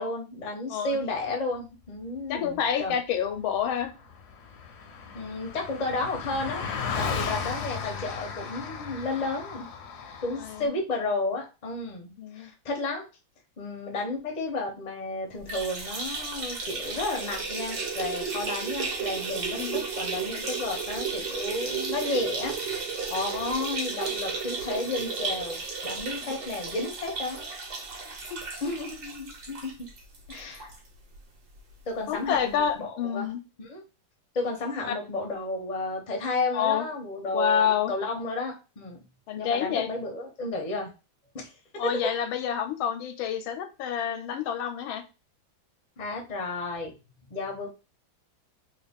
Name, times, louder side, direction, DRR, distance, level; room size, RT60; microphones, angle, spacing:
voice 1, 0.0-3.0 5.1-6.6 7.0-9.7 10.2-13.1 13.6-22.6 23.1-27.5 28.6-29.7 30.3-30.7 31.9-33.3 33.6-33.8 34.3-39.0 39.4-40.9 41.3-41.5 46.0-46.9 47.3-47.7, left 2 dB, 45° left, 1 dB, 0.5 m, -32 dB
voice 2, 2.3-3.9 10.4-10.8 12.2-12.5 19.6-19.9 28.3-28.8 32.1-33.4 34.8-34.9 36.5-36.9 37.3-37.9 39.3-39.9 41.8-45.0, left 8 dB, 90° left, 8 dB, 1.4 m, -28 dB
Car passing by, 3.6-3.7 3.8-10.7, left 6 dB, 70° left, 1.0 m, -35 dB
sound 1, 15.4-30.8 31.1-31.2 31.6-31.7 32.7-32.8, right 5 dB, 60° right, 1.3 m, -33 dB
3.4 x 2.4 x 3.5 m, 0.30 s
omnidirectional pair, 2.2 m